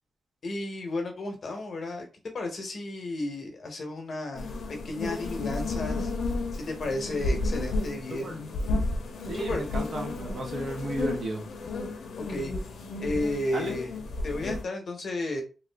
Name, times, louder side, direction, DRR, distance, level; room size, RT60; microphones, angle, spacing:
voice 1, 0.4-2.1 2.3-4.5 4.8-6.1 6.6-8.3 9.4-9.6 12.2-12.5 13.0-14.0 14.2-15.4, left 2 dB, 55° left, 4 dB, 0.8 m, -33 dB
sound 1, 4.3-14.6, left 2 dB, 85° left, 0.6 m, -32 dB
voice 2, 9.3-11.4 13.5-13.8, right 1 dB, 50° right, 2 dB, 0.9 m, -33 dB
2.6 x 2.5 x 3.3 m, 0.34 s
wide cardioid pair, 145°, 0 cm